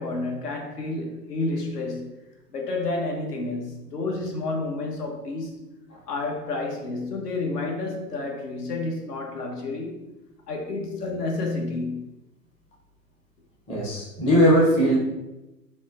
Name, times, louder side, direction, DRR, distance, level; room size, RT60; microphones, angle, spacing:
voice 1, 0.0-2.2 2.5-5.6 6.1-10.0 10.5-12.1, left 2 dB, 70° left, 1 dB, 1.1 m, -30 dB
voice 2, 13.7-15.0, equal, 15° left, -5 dB, 0.6 m, -19 dB
4.1 x 2.2 x 3.7 m, 0.99 s
figure-of-eight pair, 115°, 49 cm